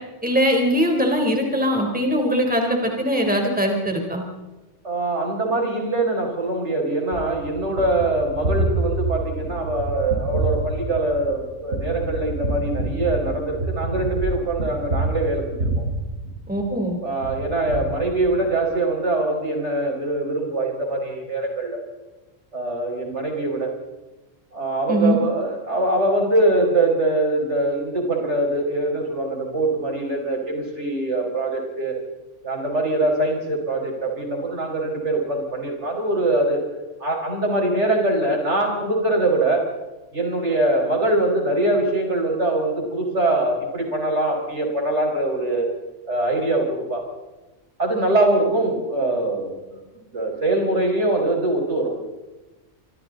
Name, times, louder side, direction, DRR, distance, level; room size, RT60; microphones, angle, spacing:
voice 1, 0.2-4.2 16.5-17.0 24.9-25.2, equal, 5° right, 1 dB, 3.8 m, -21 dB
voice 2, 4.8-15.9 17.0-21.8 22.5-23.7 24.5-32.0 32.4-36.6 37.0-39.6 40.1-45.7 46.1-47.0 47.8-49.8 50.1-51.9, right 2 dB, 65° right, 0 dB, 5.6 m, -23 dB
Gunshot gunfire, 7.1-16.8 17.2-18.6, right 2 dB, 85° right, 5.8 m, -27 dB
27.0 x 25.0 x 4.0 m, 1.1 s
omnidirectional pair, 1.3 m